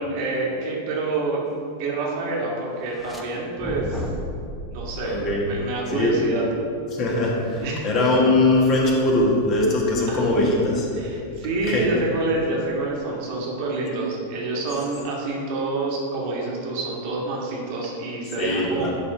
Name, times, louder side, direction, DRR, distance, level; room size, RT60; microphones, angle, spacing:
voice 1, 0.0-1.5 1.8-4.1 4.7-6.4 7.6-7.9 10.1-10.6 10.9-18.9, right 2 dB, 45° right, -3 dB, 1.8 m, -27 dB
sound 1, 2.8-3.2 3.6-6.2, left 1 dB, ahead, 1.0 m, -34 dB
voice 2, 5.0-5.5 5.9-6.1 6.9-10.9 11.6-11.9 18.4-18.9, left 2 dB, 35° left, -2 dB, 1.7 m, -21 dB
11.0 x 4.2 x 4.9 m, 2.5 s
figure-of-eight pair, 90°, 0 cm